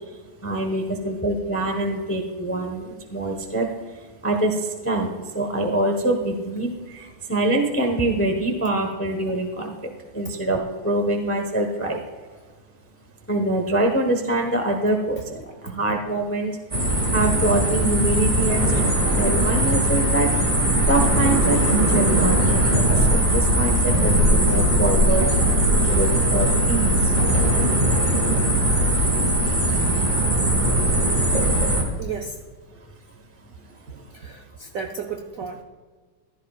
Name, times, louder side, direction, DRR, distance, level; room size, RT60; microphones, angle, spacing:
voice 1, 0.1-3.7 3.9-12.0 13.3-16.6 17.1-20.3 20.9-25.3 25.9-27.2 33.9-34.2, right 2 dB, 15° left, 3 dB, 0.4 m, -25 dB
sound 1, 16.7-31.8, right 1 dB, 20° right, 1.8 m, -19 dB
voice 2, 32.0-32.4 34.1-35.6, right 5 dB, 75° right, 3 dB, 0.7 m, -33 dB
15.5 x 13.0 x 2.4 m, 1.5 s
omnidirectional pair, 2.4 m